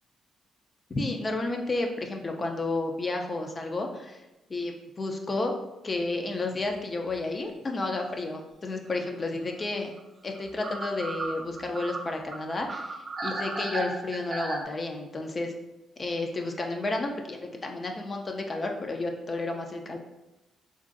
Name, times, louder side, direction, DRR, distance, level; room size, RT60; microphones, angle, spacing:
voice 1, 0.9-4.2 4.5-5.5 5.8-9.9 10.2-15.5 16.0-20.0, left 2 dB, 35° left, 3 dB, 0.3 m, -31 dB
sound 1, 6.5-6.7 7.1-7.2 9.6-9.7 10.0-10.1 10.3-14.6, right 2 dB, 45° right, 0.6 m, -34 dB
2.9 x 2.5 x 2.4 m, 1.0 s
cardioid pair, 90°, 0 cm